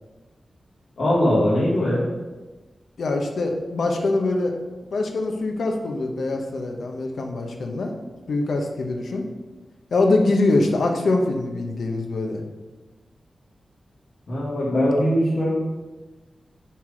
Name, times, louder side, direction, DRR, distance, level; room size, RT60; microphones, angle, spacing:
voice 1, 1.0-2.0 14.3-15.5, equal, 65° left, -8 dB, 1.9 m, -20 dB
voice 2, 3.0-4.6 4.9-7.9 8.3-9.2 9.9-12.4, left 2 dB, 85° left, 3 dB, 0.9 m, -23 dB
5.6 x 4.7 x 4.9 m, 1.2 s
wide cardioid pair, 160°, 0 cm